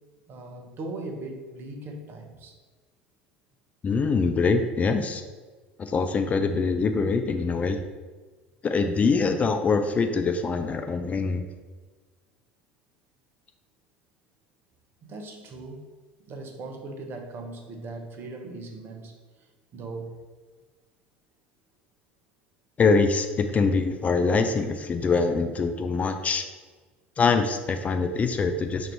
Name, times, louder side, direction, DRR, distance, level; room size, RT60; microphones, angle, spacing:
voice 1, 0.3-2.5 15.0-15.9 16.3-19.1 19.7-20.2, right 2 dB, 40° right, 4 dB, 0.7 m, -39 dB
voice 2, 3.8-5.2 5.8-7.8 8.6-11.5 22.8-26.4 27.2-28.9, left 4 dB, 25° left, 6 dB, 0.3 m, -24 dB
4.5 x 2.6 x 4.4 m, 1.4 s
figure-of-eight pair, 70°, 6 cm